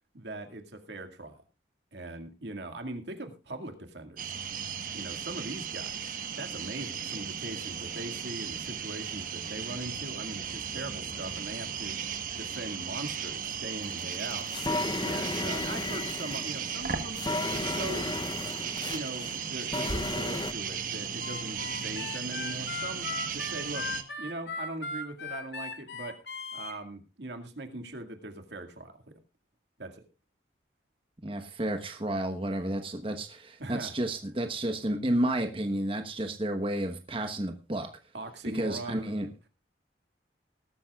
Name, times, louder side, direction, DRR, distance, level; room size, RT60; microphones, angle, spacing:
voice 1, 0.1-1.4 1.9-4.4 4.9-14.5 14.9-18.1 18.6-23.1 23.3-23.9 24.2-26.2 26.5-29.1 29.8-30.1 33.6-33.9 38.1-39.1, right 2 dB, 75° right, 6 dB, 2.1 m, -41 dB
sound 1, 4.2-24.0, right 7 dB, 50° right, 1.3 m, -36 dB
sound 2, 13.8-20.5, left 2 dB, 25° left, 0.7 m, -34 dB
Harmonica, 21.2-26.7, left 3 dB, 75° left, 2.3 m, -38 dB
voice 2, 31.2-37.9 38.5-39.3, right 1 dB, 30° right, 6 dB, 1.1 m, -31 dB
19.5 x 13.0 x 2.4 m, 0.31 s
head